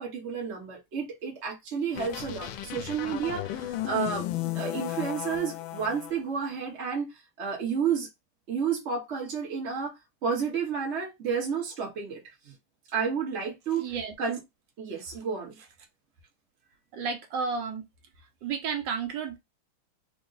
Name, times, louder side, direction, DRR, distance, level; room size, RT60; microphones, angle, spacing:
voice 1, 0.0-4.2 4.5-8.1 8.5-12.2 12.4-12.5 12.9-13.9 14.2-14.4 14.8-15.6, right 6 dB, 40° right, 1.1 m, -31 dB
sound 1, 1.9-6.1, left 13 dB, 75° left, 1.3 m, -34 dB
voice 2, 13.8-14.1 16.9-17.8 18.2-19.4, right 5 dB, 70° right, 1.4 m, -32 dB
3.8 x 2.1 x 3.9 m
omnidirectional pair, 2.3 m